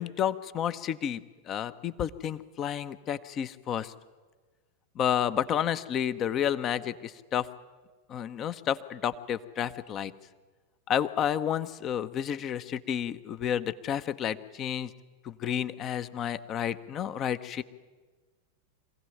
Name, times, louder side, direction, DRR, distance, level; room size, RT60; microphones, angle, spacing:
voice 1, 0.0-3.9 4.9-7.5 8.1-10.1 10.9-14.9 15.2-17.6, left 9 dB, 30° left, 14 dB, 1.0 m, -31 dB
25.0 x 16.5 x 9.3 m, 1.4 s
figure-of-eight pair, 90°, 0 cm